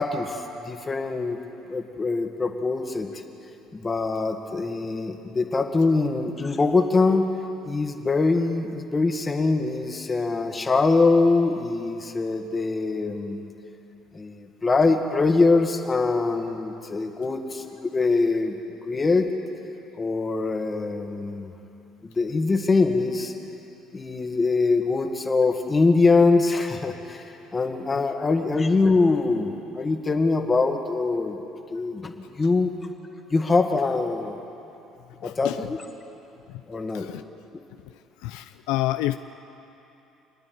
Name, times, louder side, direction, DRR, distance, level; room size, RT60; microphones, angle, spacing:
voice 1, 0.0-1.4 1.7-3.1 3.7-7.3 7.6-13.5 14.1-18.6 18.8-19.3 20.0-21.5 22.0-23.3 23.9-27.3 27.5-31.4 31.7-32.7 33.3-34.4 35.2-35.8 36.7-37.1, left 3 dB, 25° left, 5 dB, 1.8 m, -23 dB
voice 2, 35.2-35.7 36.9-37.2 38.2-39.2, left 16 dB, 90° left, 9 dB, 0.5 m, -28 dB
28.5 x 9.7 x 9.5 m, 3.0 s
cardioid pair, 105°, 0 cm